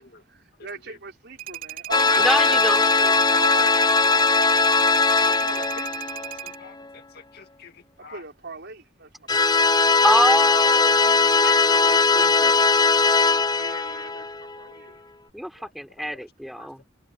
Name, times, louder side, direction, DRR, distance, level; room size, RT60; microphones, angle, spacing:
voice 1, 0.0-4.9 5.4-5.9 8.0-9.6 13.5-15.0, right 4 dB, 60° right, 5.7 m, -39 dB
sound 1, 1.4-6.6, right 14 dB, 45° right, 3.5 m, -37 dB
sound 2, 1.9-6.5 9.3-14.6, left 4 dB, 20° left, 0.7 m, -19 dB
voice 2, 2.2-2.8 10.0-12.6 15.3-16.8, equal, ahead, 4.5 m, -26 dB
voice 3, 6.4-8.2 11.6-12.2 15.6-15.7 16.6-16.7, left 5 dB, 55° left, 2.3 m, -47 dB
head